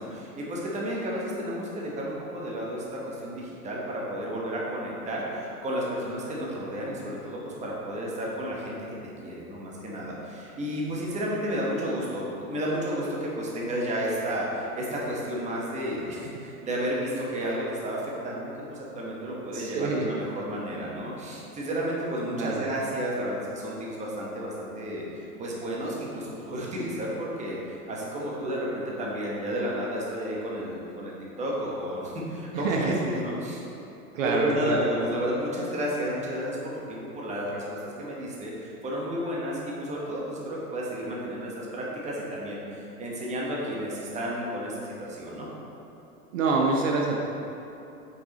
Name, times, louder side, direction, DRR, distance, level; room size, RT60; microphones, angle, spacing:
voice 1, 0.0-9.0 9.2-25.0 25.4-27.6 27.9-33.6 34.2-45.5, equal, 15° right, -4 dB, 1.2 m, -32 dB
voice 2, 19.5-20.1 22.3-22.7 32.5-32.9 34.1-34.8 46.3-47.2, right 3 dB, 55° right, 0 dB, 0.8 m, -26 dB
7.9 x 5.5 x 3.0 m, 2.9 s
hypercardioid pair, 115°, 46 cm